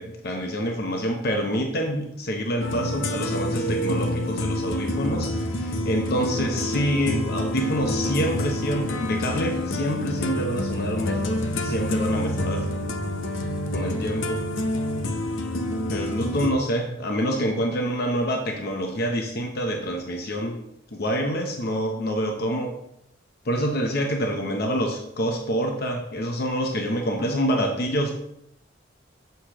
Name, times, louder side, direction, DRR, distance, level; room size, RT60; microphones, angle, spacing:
voice 1, 0.0-12.7 13.7-14.4 15.9-20.6 20.9-22.7 23.4-28.2, equal, 55° left, 2 dB, 0.9 m, -27 dB
sound 1, 2.6-16.5, left 1 dB, 85° left, 0.7 m, -27 dB
8.0 x 6.4 x 3.0 m, 0.78 s
head